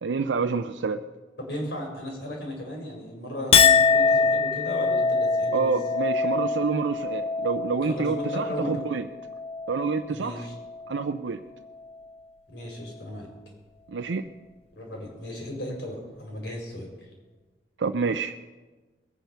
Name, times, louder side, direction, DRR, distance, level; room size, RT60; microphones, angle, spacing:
voice 1, 0.0-1.0 5.5-9.1 9.7-10.5 10.9-11.4 13.9-14.2 17.8-18.3, right 4 dB, 90° right, 6 dB, 0.5 m, -27 dB
voice 2, 1.4-5.7 7.8-8.8 10.1-10.5 12.5-13.3 14.7-16.9, equal, 70° left, 0 dB, 4.9 m, -35 dB
Chink clink, 3.5-10.1 10.5-11.0, left 5 dB, 35° left, 0.4 m, -24 dB
21.0 x 9.1 x 5.7 m, 1.3 s
head